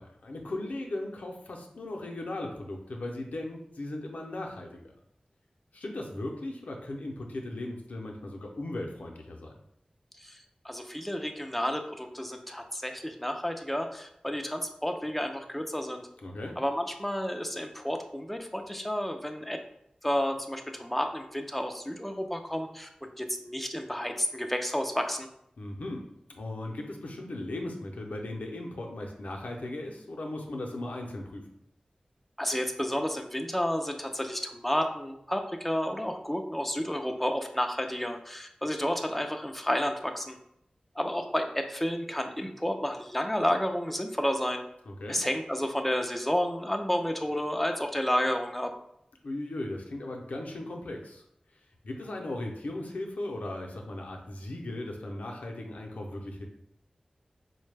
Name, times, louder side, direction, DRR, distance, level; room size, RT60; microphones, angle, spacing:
voice 1, 0.0-4.7 5.7-9.5 16.2-16.5 25.6-31.4 44.9-45.2 49.2-51.2 51.8-56.5, left 1 dB, 85° left, 1 dB, 0.5 m, -37 dB
voice 2, 10.2-16.1 16.6-19.6 20.0-22.9 23.2-25.3 32.4-40.4 41.0-44.6 45.1-48.7, equal, 5° left, 4 dB, 0.4 m, -31 dB
3.9 x 2.1 x 3.2 m, 0.75 s
wide cardioid pair, 45°, 2 cm